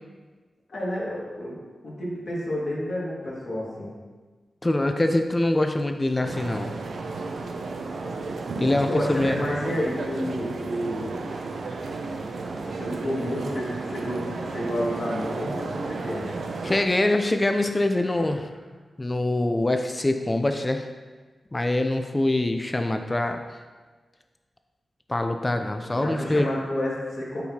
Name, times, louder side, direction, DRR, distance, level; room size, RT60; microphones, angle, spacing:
voice 1, 0.7-1.6 1.8-4.0 8.8-11.2 12.6-16.3 18.1-18.3 25.8-27.4, equal, 60° left, -5 dB, 1.9 m, -30 dB
voice 2, 4.6-6.7 8.6-9.3 16.6-18.5 19.0-20.9 21.5-23.4 25.1-26.4, left 1 dB, 20° left, 6 dB, 0.4 m, -24 dB
sound 1, 6.2-16.8, right 3 dB, 85° right, 0.6 m, -33 dB
10.5 x 4.7 x 2.8 m, 1.3 s
wide cardioid pair, 125°, 0 cm